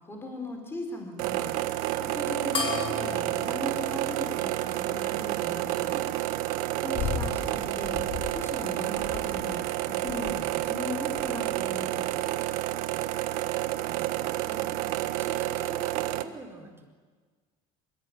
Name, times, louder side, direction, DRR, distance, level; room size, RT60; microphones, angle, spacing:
voice 1, 0.1-1.5 2.0-6.1 6.8-7.9 8.3-9.6 9.9-12.2, left 1 dB, 15° left, 3 dB, 4.7 m, -38 dB
sound 1, 1.2-16.2, right 15 dB, 75° right, 1.4 m, -30 dB
sound 2, 2.5-5.3, left 4 dB, 35° left, 4.9 m, -36 dB
voice 2, 6.8-7.1 13.3-14.7 15.2-16.9, right 3 dB, 15° right, 2 dB, 4.2 m, -46 dB
sound 3, 6.9-7.4 7.8-8.4 8.9-9.6 10.1-10.5 11.2-11.5 12.2-12.6 13.5-13.6, left 7 dB, 70° left, 4.6 m, -35 dB
24.0 x 22.0 x 8.9 m, 1.5 s
cardioid pair, 115°, 15 cm